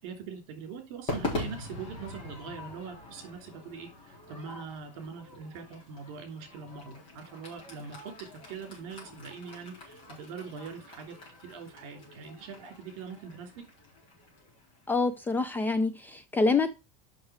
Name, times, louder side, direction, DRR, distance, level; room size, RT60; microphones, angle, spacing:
voice 1, 0.0-11.1 11.4-13.5, right 6 dB, 55° right, 3.0 m, -42 dB
Crowd / Fireworks, 1.1-15.5, left 2 dB, 30° left, 4.0 m, -43 dB
voice 2, 14.9-16.7, left 3 dB, 10° left, 0.4 m, -26 dB
6.4 x 6.0 x 4.9 m
cardioid pair, 170°, 17 cm